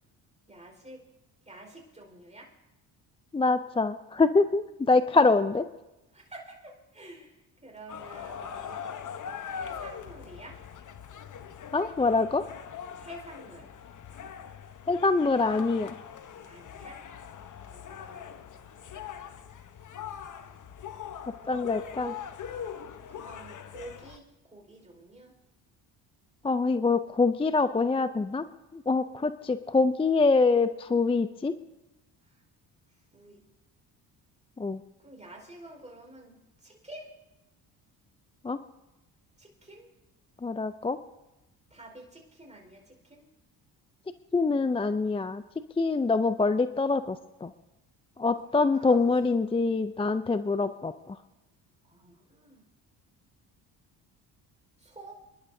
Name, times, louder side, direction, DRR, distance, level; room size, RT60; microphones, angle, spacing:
voice 1, 0.5-1.1 1.4-2.5 5.1-5.2 6.1-8.8 9.5-10.6 13.0-13.7 16.5-17.0 17.7-18.4 20.0-20.2 21.4-22.2 23.1-25.3 33.1-33.4 35.0-37.1 39.4-39.9 41.7-43.3 48.6-49.1 51.9-52.6 54.8-55.1, right 2 dB, 15° right, 1 dB, 4.7 m, -48 dB
voice 2, 3.3-5.6 11.7-12.4 14.9-15.9 21.5-22.1 26.4-28.4 28.7-31.5 34.6-34.8 38.4-38.6 40.4-41.0 44.3-45.4 45.8-47.5 48.2-51.2, left 3 dB, 15° left, 12 dB, 0.5 m, -25 dB
sound 1, 7.9-24.2, left 8 dB, 45° left, 1.0 m, -42 dB
28.0 x 11.5 x 2.7 m, 0.98 s
supercardioid pair, 65°, 42 cm